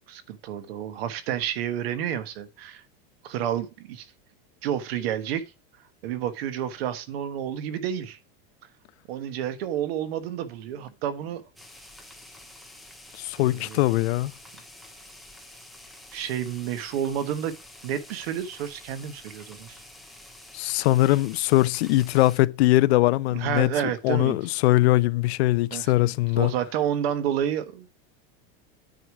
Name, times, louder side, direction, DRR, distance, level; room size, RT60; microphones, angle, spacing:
voice 1, 0.1-2.8 3.2-4.1 4.6-5.4 6.0-8.2 9.1-11.4 13.4-13.9 16.1-17.5 17.8-19.8 23.3-24.4 25.7-27.9, right 10 dB, 70° right, 1.3 m, -30 dB
sound 1, 11.6-22.4, left 1 dB, ahead, 0.3 m, -48 dB
voice 2, 13.2-14.3 20.5-23.7 24.0-26.5, left 17 dB, 85° left, 0.6 m, -21 dB
9.0 x 4.8 x 4.7 m
supercardioid pair, 180°, 31 cm